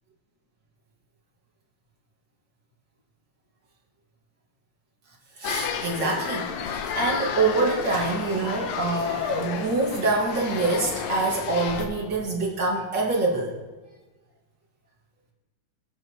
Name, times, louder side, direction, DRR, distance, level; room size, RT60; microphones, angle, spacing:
sound 1, 5.4-11.9, left 7 dB, 75° left, 2.4 m, -31 dB
voice 1, 5.4-13.5, right 3 dB, 35° right, -3 dB, 2.1 m, -25 dB
23.5 x 8.0 x 3.0 m, 1.2 s
omnidirectional pair, 4.3 m